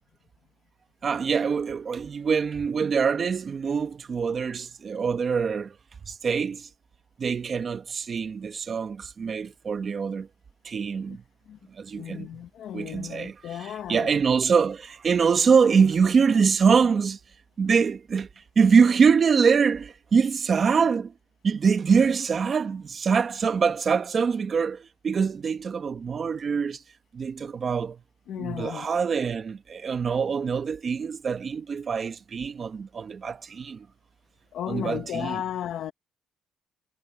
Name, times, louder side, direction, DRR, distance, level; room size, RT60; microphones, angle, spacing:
voice 1, 1.0-5.7 6.1-6.7 7.2-10.3 10.6-11.2 11.8-12.3 12.7-17.2 17.6-18.3 18.5-21.1 21.4-26.8 27.1-28.0 28.3-33.9 34.7-35.4, right 6 dB, 45° right, 1.2 m, -24 dB
voice 2, 11.9-14.2 28.3-28.9 34.5-35.9, left 11 dB, 75° left, 1.0 m, -34 dB
cardioid pair, 90°, 0 cm